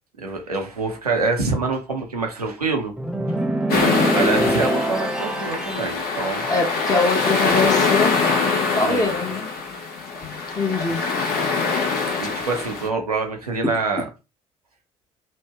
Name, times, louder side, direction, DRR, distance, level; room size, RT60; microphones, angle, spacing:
voice 1, 0.2-2.9 4.1-6.5 8.9-9.1 12.2-14.1, right 3 dB, 85° right, 3 dB, 0.6 m, -25 dB
sound 1, 3.0-6.0, right 1 dB, 5° right, 0.3 m, -24 dB
sound 2, 3.7-12.9, left 4 dB, 50° left, 0.8 m, -23 dB
voice 2, 3.8-4.1 6.5-8.1 8.7-9.4 10.2-11.0 13.6-13.7, left 3 dB, 20° left, 2 dB, 0.9 m, -23 dB
3.1 x 2.1 x 3.4 m, 0.28 s
figure-of-eight pair, 50°, 19 cm